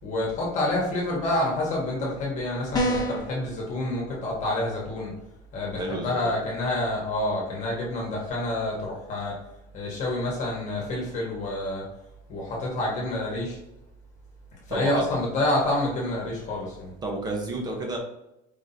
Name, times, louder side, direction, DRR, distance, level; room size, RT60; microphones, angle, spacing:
voice 1, 0.0-5.1 5.5-9.3 9.7-11.8 12.3-13.6 14.7-16.9, left 1 dB, 40° left, -3 dB, 1.6 m, -28 dB
sound 1, 2.7-3.3, equal, 20° left, 1.0 m, -25 dB
voice 2, 5.8-6.3 14.7-15.0 17.0-18.0, right 2 dB, 20° right, 1 dB, 1.0 m, -31 dB
4.9 x 3.7 x 2.8 m, 0.89 s
cardioid pair, 155°, 20 cm